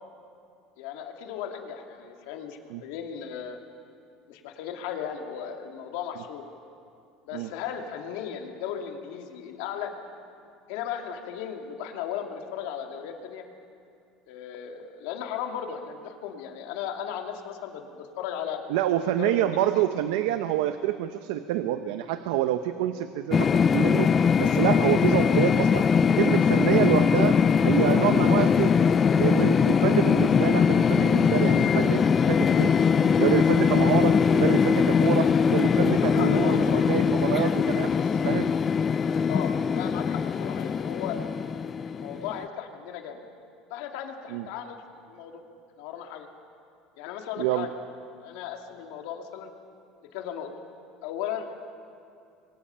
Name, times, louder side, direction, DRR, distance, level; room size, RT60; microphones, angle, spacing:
voice 1, 0.8-3.6 4.3-6.5 7.3-9.9 10.7-13.5 14.3-18.6 19.2-19.9 36.0-36.9 39.3-41.2 41.8-43.2 43.7-44.8 45.1-45.4 45.8-46.3 47.0-47.7 48.2-49.5 50.1-50.5 51.0-51.5, left 9 dB, 80° left, 3 dB, 2.4 m, -36 dB
voice 2, 18.7-24.1 24.4-25.9 26.2-27.4 27.6-28.8 29.2-32.7 33.2-38.5 44.3-44.5 47.4-47.7, right 12 dB, 85° right, 9 dB, 0.8 m, -27 dB
sound 1, 23.3-42.4, left 6 dB, 25° left, 0.4 m, -22 dB
27.0 x 23.5 x 5.7 m, 2.5 s
cardioid pair, 145°, 0 cm